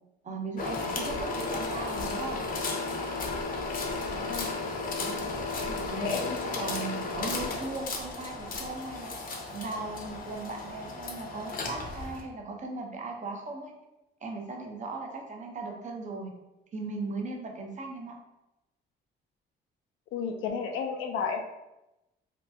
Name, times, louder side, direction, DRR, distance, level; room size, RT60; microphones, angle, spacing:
voice 1, 0.2-2.4 5.0-9.2 9.5-13.7 14.2-16.3 16.7-18.2, right 3 dB, 35° right, 1 dB, 0.7 m, -38 dB
sound 1, 0.6-12.2, left 3 dB, 45° left, 0.7 m, -34 dB
voice 2, 4.1-4.5 5.9-6.7 20.1-21.4, left 6 dB, 90° left, 4 dB, 0.5 m, -33 dB
2.8 x 2.3 x 3.4 m, 0.94 s
cardioid pair, 90°, 20 cm